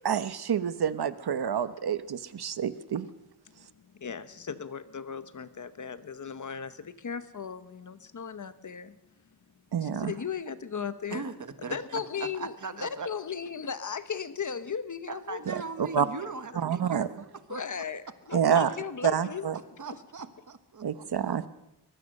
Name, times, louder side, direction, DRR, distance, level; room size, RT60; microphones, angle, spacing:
voice 1, 0.0-3.1 9.7-10.1 15.8-16.0 16.6-17.1 18.3-18.7 19.0-19.5 20.8-21.5, right 8 dB, 70° right, 12 dB, 1.0 m, -27 dB
voice 2, 4.0-8.9 9.8-11.2 11.6-12.5 12.8-15.4 16.0-16.1 17.5-19.5, left 6 dB, 45° left, 12 dB, 1.0 m, -36 dB
voice 3, 11.1-13.1 15.1-17.8 18.2-18.4 19.5-20.9 21.2-21.5, right 4 dB, 50° right, 10 dB, 1.4 m, -40 dB
23.5 x 21.0 x 6.6 m, 0.93 s
wide cardioid pair, 165°, 40 cm